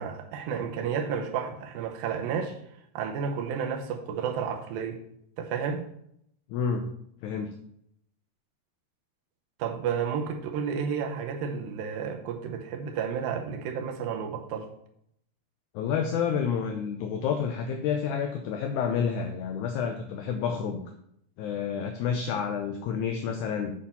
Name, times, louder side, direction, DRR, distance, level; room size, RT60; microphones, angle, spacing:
voice 1, 0.0-2.6 3.0-5.0 5.4-5.8 9.6-14.7, right 7 dB, 90° right, 3 dB, 2.6 m, -31 dB
voice 2, 6.5-6.9 7.2-7.5 15.7-20.8 21.4-23.7, left 7 dB, 80° left, 5 dB, 1.8 m, -29 dB
8.5 x 4.4 x 5.4 m, 0.73 s
omnidirectional pair, 4.0 m